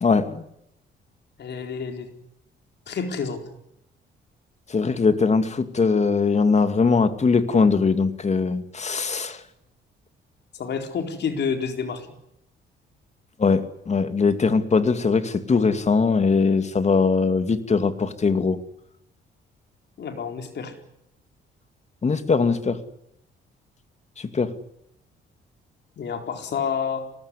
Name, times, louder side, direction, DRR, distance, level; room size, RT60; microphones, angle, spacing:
voice 1, 0.0-0.4 4.7-9.4 13.4-18.6 22.0-22.8 24.2-24.5, left 4 dB, 35° left, 10 dB, 2.5 m, -21 dB
voice 2, 1.4-2.1 2.9-3.4 10.5-12.1 20.0-20.7 26.0-27.0, left 6 dB, 60° left, 5 dB, 4.3 m, -29 dB
24.0 x 19.0 x 9.9 m, 0.77 s
cardioid pair, 90°, 20 cm